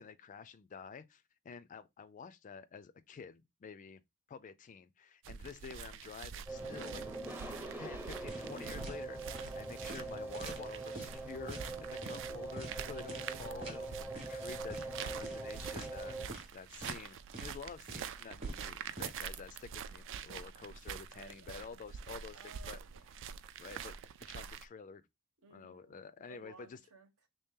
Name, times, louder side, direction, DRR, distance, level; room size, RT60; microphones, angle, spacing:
voice 1, 0.0-4.0 4.3-7.0 7.8-22.8 23.6-25.0 25.5-26.8, left 5 dB, 35° left, 0.3 m, -50 dB
sound 1, 5.2-24.6, right 7 dB, 60° right, 0.3 m, -46 dB
sound 2, 6.5-16.3, right 2 dB, 10° right, 0.5 m, -43 dB
sound 3, 8.3-8.5 8.8-9.0 9.3-9.5 9.9-11.1 11.5-11.7 12.0-12.2 12.6-12.7 13.1-13.3 13.6-13.8 14.1-14.4 14.7-14.9 15.2-15.4 15.8-16.0 16.3-16.5 16.8-17.0 17.3-17.6 17.9-19.1, right 1 dB, 25° right, 1.0 m, -46 dB
voice 2, 21.1-21.7 22.3-23.4 25.4-27.3, right 4 dB, 75° right, 1.0 m, -59 dB
3.2 x 2.8 x 3.5 m
head